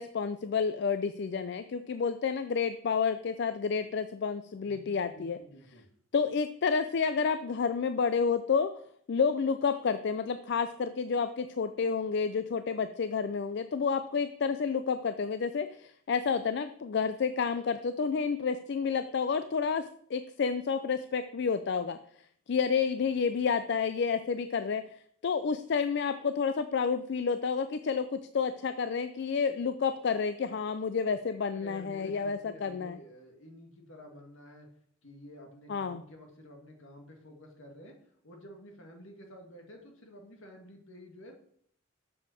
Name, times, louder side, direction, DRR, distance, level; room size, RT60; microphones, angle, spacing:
voice 1, 0.0-5.4 6.1-8.7 9.1-22.0 22.5-24.8 25.2-33.0 35.7-36.0, left 5 dB, 55° left, 11 dB, 0.4 m, -30 dB
voice 2, 4.6-5.9 31.0-34.7 35.0-41.3, equal, 75° left, 2 dB, 1.8 m, -51 dB
7.2 x 5.5 x 6.2 m, 0.65 s
head